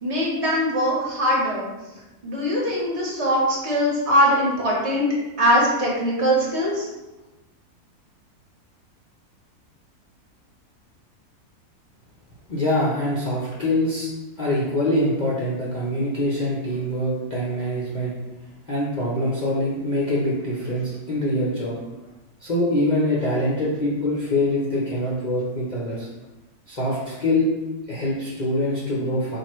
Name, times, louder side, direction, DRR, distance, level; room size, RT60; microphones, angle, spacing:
voice 1, 0.0-1.7 2.2-5.1 5.4-6.9, equal, 50° right, -4 dB, 1.3 m, -21 dB
voice 2, 12.5-14.1 14.4-18.1 18.7-21.8 22.4-26.1 26.7-27.5 27.9-29.4, left 1 dB, 40° left, -7 dB, 0.7 m, -24 dB
4.6 x 2.6 x 4.4 m, 1.1 s
omnidirectional pair, 1.6 m